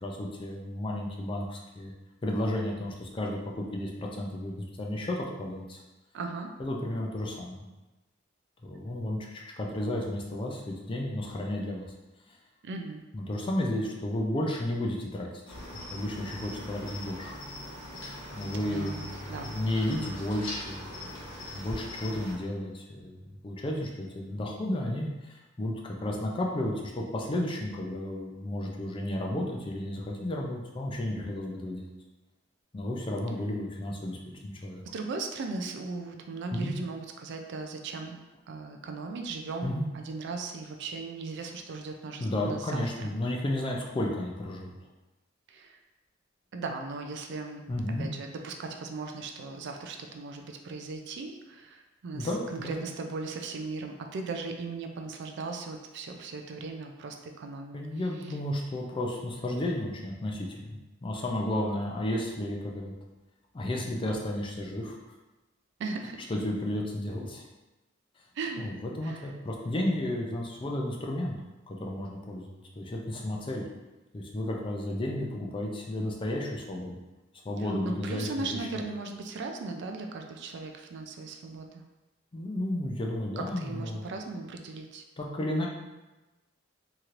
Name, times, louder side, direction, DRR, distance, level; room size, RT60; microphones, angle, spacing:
voice 1, 0.0-1.9 2.2-5.8 6.6-7.7 8.6-11.9 12.3-12.4 13.1-17.4 18.3-31.9 32.7-34.2 34.4-34.8 36.5-36.7 39.6-39.9 42.2-44.7 47.7-48.1 52.1-52.8 57.7-62.9 63.5-65.0 66.3-67.4 68.6-71.3 71.7-73.6 74.1-77.0 77.4-78.7 82.3-84.0 85.2-85.7, left 1 dB, 25° left, -1 dB, 0.4 m, -33 dB
voice 2, 6.1-6.5 12.6-13.0 18.7-19.5 34.9-38.2 38.5-43.2 45.5-45.8 46.5-47.7 48.0-57.8 65.8-66.2 68.3-68.6 69.0-69.3 77.6-81.8 83.4-85.0, right 3 dB, 60° right, 4 dB, 0.3 m, -38 dB
Cricket, 15.5-22.4, left 1 dB, 85° left, 1.0 m, -41 dB
3.1 x 2.8 x 2.4 m, 1.1 s
head